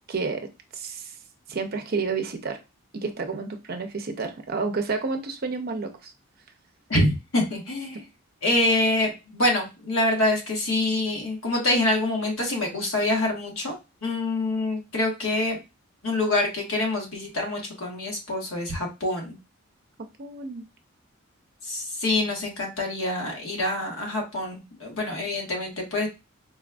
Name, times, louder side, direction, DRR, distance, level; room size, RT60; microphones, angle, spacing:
voice 1, 0.1-0.5 0.7-1.2 1.5-2.6 2.9-6.1 20.0-20.7, right 4 dB, 45° right, 5 dB, 0.5 m, -30 dB
voice 2, 6.9-8.0 8.4-15.6 16.0-19.4 21.6-26.1, left 1 dB, 75° left, 0 dB, 1.4 m, -26 dB
4.1 x 2.5 x 2.2 m, 0.26 s
head